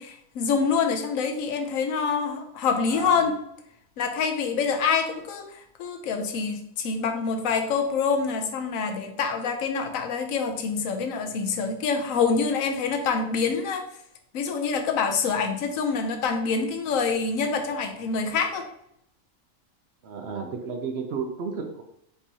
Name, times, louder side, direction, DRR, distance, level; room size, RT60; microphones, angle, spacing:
voice 1, 0.0-3.3 4.0-13.8 14.3-18.7, left 5 dB, 80° left, 5 dB, 1.0 m, -26 dB
voice 2, 2.9-3.3 20.0-21.8, right 5 dB, 60° right, 3 dB, 0.7 m, -33 dB
5.3 x 3.0 x 2.7 m, 0.74 s
omnidirectional pair, 1.4 m